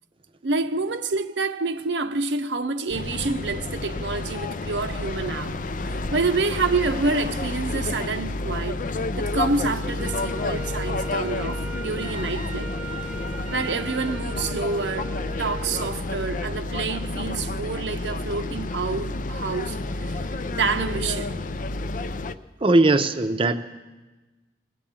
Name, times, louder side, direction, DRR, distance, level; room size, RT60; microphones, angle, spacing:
voice 1, 0.4-12.8 13.5-20.2 20.5-21.3, right 3 dB, 85° right, 0.7 m, -28 dB
sound 1, 2.9-22.3, left 2 dB, 45° left, 0.5 m, -30 dB
Wind instrument woodwind instrument, 10.0-16.1, right 1 dB, 5° right, 1.2 m, -38 dB
voice 2, 22.6-23.5, right 2 dB, 30° right, 0.7 m, -19 dB
20.0 x 8.3 x 8.7 m
head